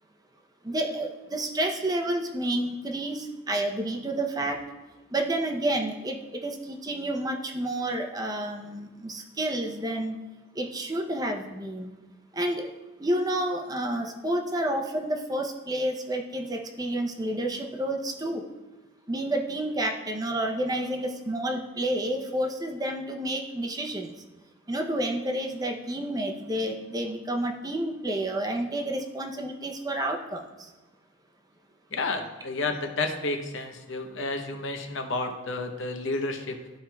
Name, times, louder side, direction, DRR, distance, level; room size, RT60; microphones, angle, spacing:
voice 1, 0.6-4.6 5.1-6.2 6.4-10.2 10.6-11.9 12.3-12.7 13.0-18.4 19.1-24.1 24.7-30.7, right 1 dB, 20° right, 2 dB, 0.6 m, -30 dB
voice 2, 31.9-36.6, left 3 dB, 75° left, 5 dB, 0.8 m, -31 dB
13.5 x 4.5 x 2.3 m, 1.1 s
head